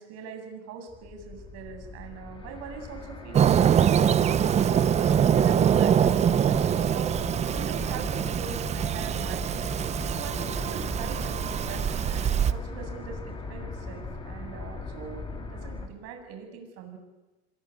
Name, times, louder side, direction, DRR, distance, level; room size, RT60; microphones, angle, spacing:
voice 1, 0.0-7.2 7.5-9.6 10.1-17.0, right 6 dB, 45° right, 5 dB, 7.8 m, -42 dB
sound 1, 0.9-15.9, left 3 dB, 15° left, 3.6 m, -39 dB
Fireworks, 3.3-12.5, right 8 dB, 20° right, 0.8 m, -24 dB
26.0 x 22.5 x 9.5 m, 1.1 s
supercardioid pair, 140°, 35 cm